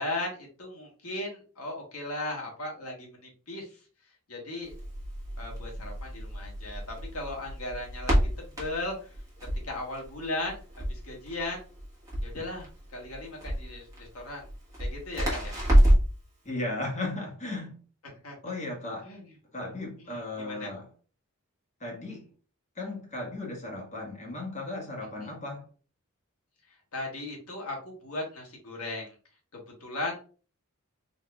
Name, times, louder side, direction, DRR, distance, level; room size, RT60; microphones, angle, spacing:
voice 1, 0.0-3.7 4.3-4.7 5.4-9.1 9.6-10.6 10.9-11.6 12.2-14.4 14.8-15.5 18.2-18.4 19.0-19.2 20.0-20.7 25.2-25.3 26.9-29.1 29.5-30.2, left 2 dB, 90° left, 1.3 m, -37 dB
Crackle, 4.6-16.2, equal, 15° right, 1.2 m, -28 dB
voice 2, 16.4-17.8 18.4-19.1 19.5-20.8 21.8-22.3 22.8-25.6, left 2 dB, 35° left, 1.2 m, -36 dB
3.9 x 2.7 x 2.3 m
head